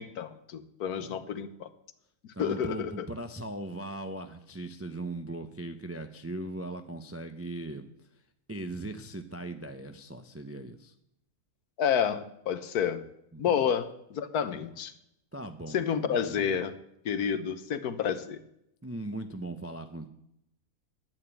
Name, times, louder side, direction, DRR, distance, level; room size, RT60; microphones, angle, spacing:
voice 1, 0.0-1.7 2.4-3.1 11.8-13.0 13.4-14.9 15.7-16.7 17.0-18.4, left 8 dB, 75° left, 11 dB, 1.4 m, -30 dB
voice 2, 0.9-1.3 2.3-8.2 8.5-10.9 13.3-13.7 14.5-14.7 15.3-16.6 18.8-20.1, right 2 dB, 20° right, 7 dB, 0.3 m, -39 dB
10.5 x 8.9 x 8.9 m, 0.78 s
omnidirectional pair, 1.7 m